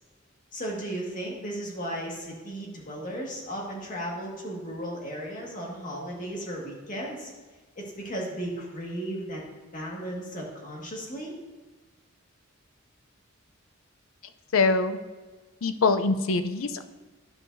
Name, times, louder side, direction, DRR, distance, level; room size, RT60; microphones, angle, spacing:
voice 1, 0.5-7.3 7.8-9.4 9.7-11.3, right 1 dB, 40° left, -2 dB, 1.8 m, -35 dB
voice 2, 14.5-15.0 15.6-16.8, left 3 dB, 75° left, 10 dB, 0.5 m, -23 dB
12.0 x 5.6 x 2.6 m, 1.3 s
head